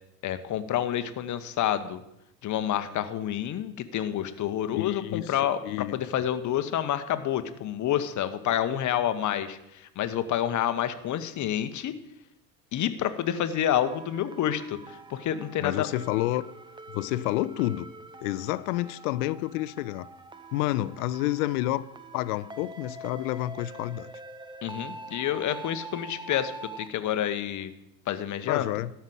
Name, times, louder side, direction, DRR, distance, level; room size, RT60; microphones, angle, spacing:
voice 1, 0.2-2.0 2.4-11.9 12.7-15.9 24.6-27.7 28.1-28.7, left 10 dB, 35° left, 11 dB, 1.0 m, -28 dB
voice 2, 4.7-5.3 5.6-6.0 15.6-16.4 16.9-17.9 18.2-20.1 20.5-21.8 22.1-24.1 28.5-28.9, left 16 dB, 60° left, 18 dB, 0.7 m, -29 dB
sound 1, 13.8-26.9, right 2 dB, 10° right, 0.7 m, -45 dB
13.0 x 5.8 x 7.6 m, 0.84 s
hypercardioid pair, 75°, 49 cm